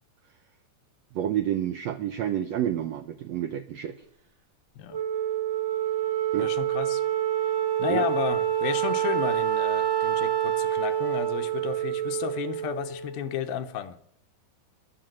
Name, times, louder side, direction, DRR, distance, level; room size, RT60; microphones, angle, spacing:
voice 1, 1.1-3.9 6.3-6.5 7.9-8.0, right 10 dB, 90° right, 1.5 m, -29 dB
Wind instrument woodwind instrument, 4.9-13.5, right 11 dB, 60° right, 0.7 m, -27 dB
voice 2, 6.4-7.0 7.8-14.0, left 10 dB, 90° left, 2.8 m, -32 dB
21.0 x 8.9 x 7.6 m
omnidirectional pair, 4.0 m